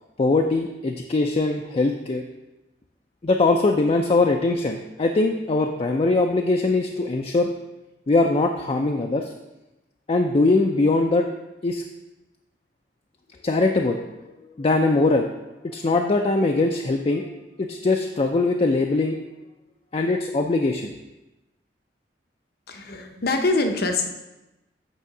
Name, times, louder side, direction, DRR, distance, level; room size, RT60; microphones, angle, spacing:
voice 1, 0.2-2.2 3.2-7.5 8.1-9.3 10.1-11.3 11.6-11.8 13.4-14.0 14.6-15.3 15.6-17.3 17.6-19.2 19.9-20.9, left 3 dB, 35° left, 3 dB, 0.4 m, -21 dB
voice 2, 22.7-24.0, left 2 dB, 60° left, 5 dB, 0.8 m, -24 dB
8.3 x 3.6 x 6.0 m, 1.0 s
head